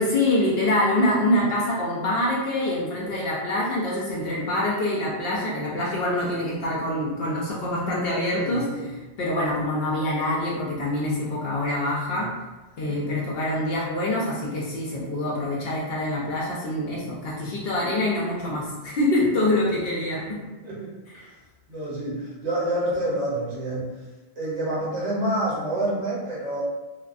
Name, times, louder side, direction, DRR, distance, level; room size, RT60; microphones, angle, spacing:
voice 1, 0.0-12.3 12.8-20.4, left 1 dB, 65° left, -5 dB, 0.8 m, -25 dB
voice 2, 8.4-8.9 12.2-12.3 12.8-13.0 20.6-21.3 21.7-24.0 24.4-26.6, right 1 dB, 40° right, -5 dB, 0.8 m, -28 dB
2.3 x 2.2 x 2.5 m, 1.2 s
omnidirectional pair, 1.1 m